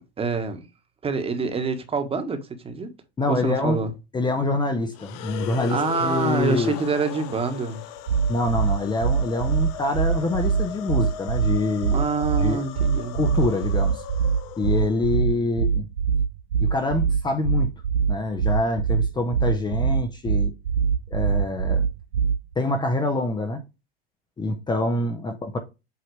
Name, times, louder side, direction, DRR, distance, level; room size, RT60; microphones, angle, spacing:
voice 1, 0.2-0.7 1.0-2.9 3.3-3.9 5.7-7.8 11.9-13.1, right 4 dB, 20° right, 1.4 m, -26 dB
voice 2, 3.2-3.8 4.1-6.8 8.3-12.0 12.4-12.6 13.1-14.0 14.6-15.9 16.6-17.7 18.1-20.5 21.1-21.9 22.6-23.6 24.4-25.6, left 2 dB, 15° left, 0.9 m, -25 dB
sound 1, 4.9-15.2, left 11 dB, 50° left, 0.8 m, -38 dB
sound 2, 8.1-22.5, right 6 dB, 85° right, 0.7 m, -23 dB
8.3 x 2.8 x 4.7 m
hypercardioid pair, 110°, 31 cm